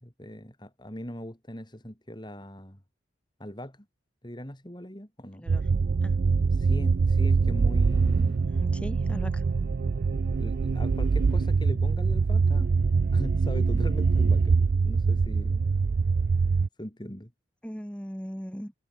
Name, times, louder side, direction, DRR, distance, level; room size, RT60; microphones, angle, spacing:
voice 1, 0.0-2.8 3.4-3.9 4.2-5.5 6.6-8.6 10.4-12.7 13.1-14.6 14.9-15.6 16.8-17.3, equal, 25° left, 3.7 m, -40 dB
voice 2, 5.4-5.7 6.0-6.1 8.5-9.4 17.6-18.7, equal, 5° left, 4.9 m, -39 dB
sound 1, 5.5-16.7, right 4 dB, 55° right, 0.4 m, -24 dB
head